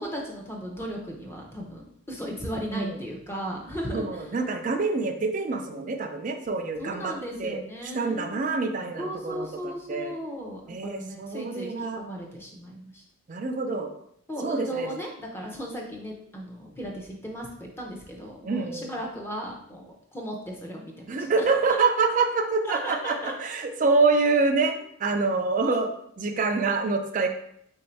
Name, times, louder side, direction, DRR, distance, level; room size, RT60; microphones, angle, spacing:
voice 1, 0.0-4.3 6.8-8.4 9.0-13.0 14.3-21.3 22.6-23.3, equal, 10° left, -1 dB, 0.6 m, -36 dB
voice 2, 3.9-7.1 7.4-7.6 7.9-10.1 10.7-12.0 13.3-13.9 14.4-14.9 18.4-18.9 21.1-25.9 26.2-27.3, right 4 dB, 35° right, 4 dB, 0.4 m, -26 dB
3.8 x 2.7 x 4.4 m, 0.71 s
head